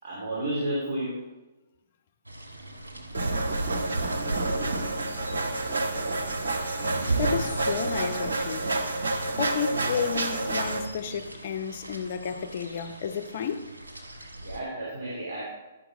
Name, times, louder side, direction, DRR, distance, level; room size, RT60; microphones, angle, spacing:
voice 1, 0.0-1.2 14.4-15.4, right 1 dB, 50° right, 2.9 m, -31 dB
sound 1, 2.3-14.6, right 1 dB, 90° right, 1.3 m, -41 dB
sound 2, 3.1-10.8, right 2 dB, 70° right, 1.3 m, -28 dB
voice 2, 6.9-8.7 9.4-13.7, left 7 dB, 50° left, 0.7 m, -32 dB
11.0 x 5.9 x 4.1 m
figure-of-eight pair, 120°, 0 cm